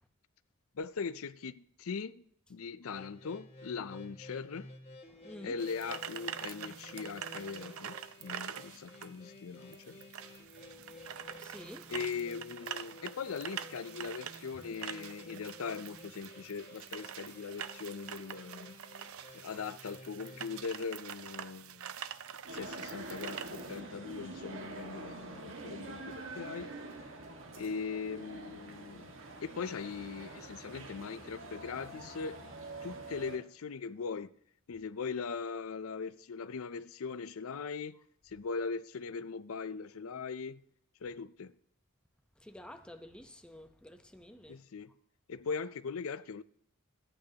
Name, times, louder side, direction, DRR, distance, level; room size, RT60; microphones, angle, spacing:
voice 1, 0.8-2.2 2.5-4.7 5.4-10.0 11.9-18.7 19.3-21.9 22.5-26.7 27.5-29.1 29.4-32.4 32.8-34.3 34.7-38.0 38.2-40.6 41.0-41.5 44.5-44.9 45.3-46.4, left 5 dB, 75° left, 0.5 m, -40 dB
sound 1, 2.9-20.6, left 2 dB, 30° left, 1.8 m, -53 dB
voice 2, 5.1-5.6 7.6-7.7 10.7-11.9 30.2-30.4 42.4-44.6, left 1 dB, 5° left, 0.9 m, -51 dB
sound 2, 5.6-23.8, right 9 dB, 85° right, 0.6 m, -45 dB
sound 3, 22.5-33.4, right 2 dB, 65° right, 1.8 m, -46 dB
25.5 x 9.0 x 2.9 m
head